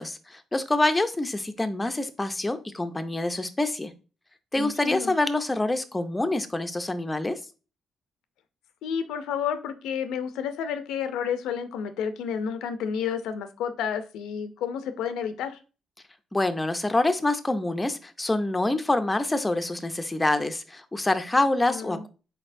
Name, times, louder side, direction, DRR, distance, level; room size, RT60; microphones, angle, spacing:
voice 1, 0.0-3.9 4.5-7.4 16.3-22.1, left 2 dB, 15° left, 0.5 m, -26 dB
voice 2, 4.5-5.1 8.8-15.6 21.6-22.0, left 7 dB, 90° left, 0.5 m, -31 dB
4.3 x 4.0 x 2.5 m
cardioid pair, 90°, 0 cm